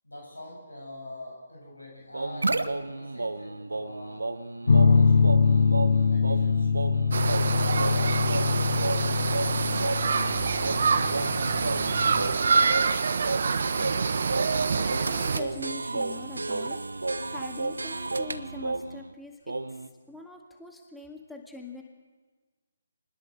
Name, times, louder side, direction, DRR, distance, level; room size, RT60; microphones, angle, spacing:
voice 1, 0.0-4.3 4.6-5.3 6.1-7.0 7.6-11.6, left 1 dB, 85° left, 0 dB, 8.0 m, -44 dB
sound 1, 2.1-19.1 19.5-19.9, right 2 dB, 70° right, 1.2 m, -33 dB
sound 2, 4.7-12.3, left 5 dB, 60° left, 1.0 m, -24 dB
sound 3, 7.1-15.4, right 5 dB, 55° right, 1.5 m, -26 dB
voice 2, 15.0-16.8 17.3-19.8 20.1-21.8, left 2 dB, ahead, 1 dB, 2.0 m, -43 dB
26.0 x 20.5 x 6.7 m, 1.4 s
figure-of-eight pair, 140°, 0 cm